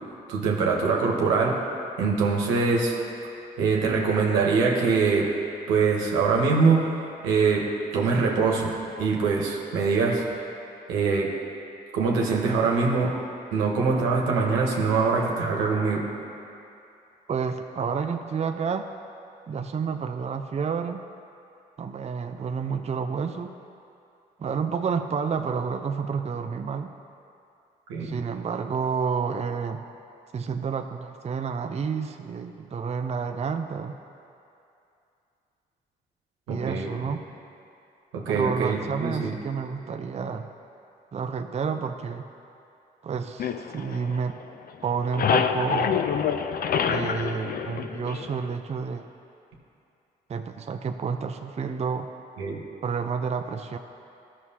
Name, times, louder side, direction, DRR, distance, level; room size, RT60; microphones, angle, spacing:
voice 1, 0.3-1.6 2.0-3.0 3.6-5.3 5.7-6.9 7.2-7.7 7.9-8.7 9.0-10.2 10.9-11.3 11.9-13.1 13.5-16.0 27.9-28.2 36.5-36.9 38.1-39.3 52.4-52.6, right 4 dB, 90° right, -1 dB, 1.1 m, -23 dB
voice 2, 17.3-18.9 19.5-21.0 21.8-23.5 24.4-26.9 28.0-29.8 30.3-34.0 36.5-37.2 38.3-40.5 41.1-42.3 43.0-44.4 44.8-46.0 46.8-49.1 50.3-52.1 52.8-53.8, right 6 dB, 35° right, 6 dB, 0.5 m, -30 dB
sound 1, 43.4-44.5 44.8-48.5, left 7 dB, 50° left, 0.5 m, -27 dB
13.5 x 6.1 x 2.8 m, 2.7 s
supercardioid pair, 50°, 20 cm